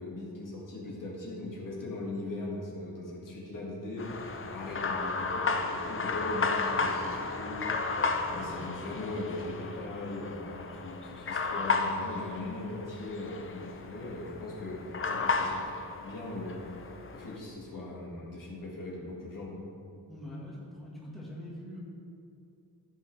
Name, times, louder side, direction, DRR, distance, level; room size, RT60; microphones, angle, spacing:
voice 1, 0.0-7.6 8.3-15.7 16.0-19.7, left 2 dB, 50° left, -4 dB, 1.8 m, -39 dB
sound 1, 4.0-17.4, left 4 dB, 35° left, 0.5 m, -33 dB
voice 2, 8.3-8.6 20.1-21.8, left 1 dB, ahead, -7 dB, 1.5 m, -44 dB
14.5 x 5.6 x 3.3 m, 2.6 s
wide cardioid pair, 175°, 41 cm